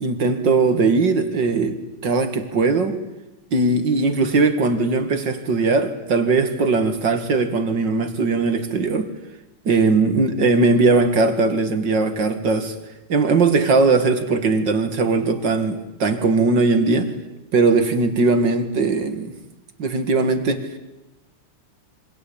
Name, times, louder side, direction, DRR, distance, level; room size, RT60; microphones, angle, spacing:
voice 1, 0.0-1.8 2.0-3.0 3.5-9.1 9.7-12.7 13.1-17.1 17.5-19.3 19.8-20.6, right 3 dB, 55° right, 2.6 m, -19 dB
27.5 x 25.0 x 8.8 m
omnidirectional pair, 2.4 m